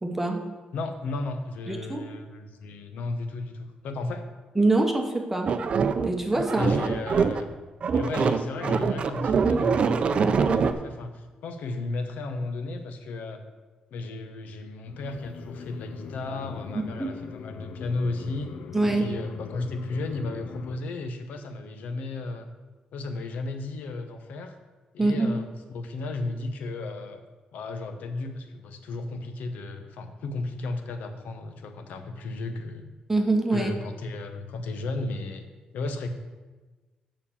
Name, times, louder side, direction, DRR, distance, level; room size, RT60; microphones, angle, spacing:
voice 1, 0.0-0.4 1.7-2.1 4.6-5.5 6.0-6.8 16.7-17.1 18.7-19.1 25.0-25.3 33.1-33.7, right 2 dB, 10° right, 3 dB, 0.9 m, -24 dB
voice 2, 0.7-4.3 6.5-7.5 7.9-13.4 13.9-18.5 18.8-22.5 22.9-24.6 24.9-27.2 27.5-32.9 33.5-35.4 35.7-36.1, left 2 dB, 85° left, 7 dB, 0.9 m, -34 dB
sound 1, 5.5-7.5 7.8-10.7, right 5 dB, 45° right, 0.5 m, -24 dB
sound 2, 14.9-20.8, left 7 dB, 70° left, 0.4 m, -41 dB
7.2 x 5.3 x 7.2 m, 1.3 s
cardioid pair, 130°, 3 cm